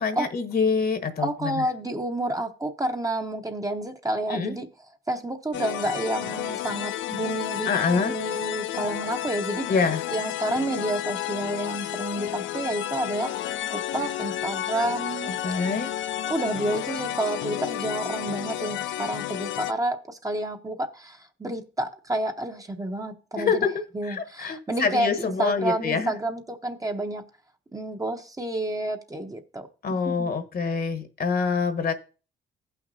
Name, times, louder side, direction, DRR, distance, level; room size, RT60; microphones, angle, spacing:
voice 1, 0.0-1.6 4.3-4.5 7.6-8.1 9.7-10.0 15.3-15.9 23.4-26.1 29.8-31.9, left 5 dB, 50° left, 1.2 m, -26 dB
voice 2, 1.2-4.7 5.1-9.7 10.1-15.3 16.3-23.7 23.9-27.2 27.7-30.3, right 1 dB, 15° right, 0.9 m, -30 dB
sound 1, 5.5-19.7, left 12 dB, 70° left, 0.5 m, -31 dB
15.5 x 5.9 x 2.7 m
cardioid pair, 90°, 20 cm